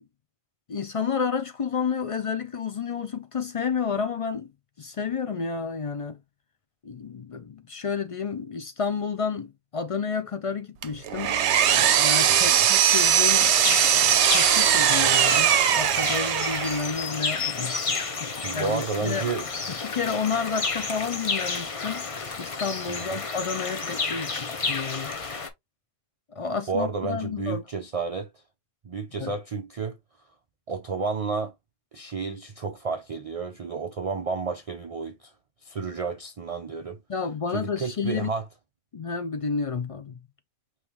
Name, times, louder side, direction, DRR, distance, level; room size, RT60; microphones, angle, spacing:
voice 1, 0.7-4.5 4.8-6.2 6.8-11.4 11.7-19.2 19.7-22.1 22.4-25.1 26.3-27.6 29.2-29.3 37.1-38.3 38.9-40.2, left 5 dB, 60° left, 0.3 m, -31 dB
Power tool, 10.8-16.9, right 9 dB, 65° right, 0.9 m, -20 dB
voice 2, 12.3-12.7 18.4-19.5 22.9-23.2 26.7-28.4 28.8-30.0 30.7-31.5 31.9-35.3 35.6-37.0 37.5-38.4, right 5 dB, 45° right, 0.4 m, -31 dB
sound 1, 13.3-25.5, left 4 dB, 35° left, 0.7 m, -31 dB
5.3 x 3.1 x 3.0 m
omnidirectional pair, 1.3 m